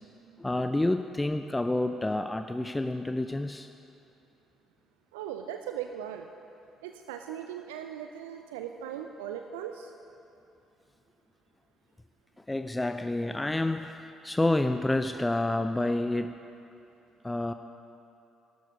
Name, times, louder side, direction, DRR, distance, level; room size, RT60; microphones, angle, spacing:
voice 1, 0.4-3.7 12.5-16.4 17.2-17.5, left 2 dB, 15° left, 8 dB, 0.5 m, -29 dB
voice 2, 5.1-6.3 6.8-9.9, right 9 dB, 75° right, 6 dB, 0.4 m, -39 dB
13.5 x 12.0 x 5.2 m, 2.8 s
figure-of-eight pair, 45°, 0 cm